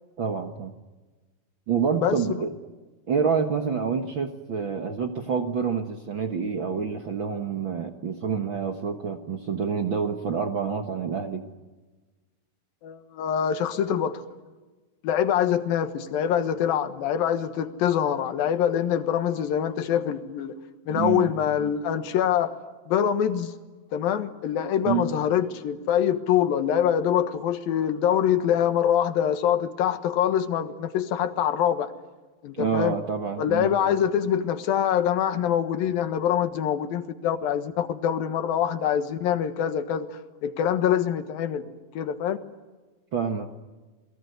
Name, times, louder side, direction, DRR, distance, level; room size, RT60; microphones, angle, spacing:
voice 1, 0.2-0.7 1.7-2.5 3.1-11.4 20.9-21.3 24.8-25.1 32.5-33.7 43.1-43.5, right 6 dB, 50° right, 5 dB, 1.5 m, -27 dB
voice 2, 2.0-2.4 12.8-14.2 15.0-20.6 20.9-22.5 22.9-23.5 23.9-31.9 32.4-33.0 33.4-41.7 41.9-42.4, left 9 dB, 85° left, 10 dB, 3.2 m, -24 dB
28.5 x 21.5 x 9.4 m, 1.3 s
omnidirectional pair, 4.0 m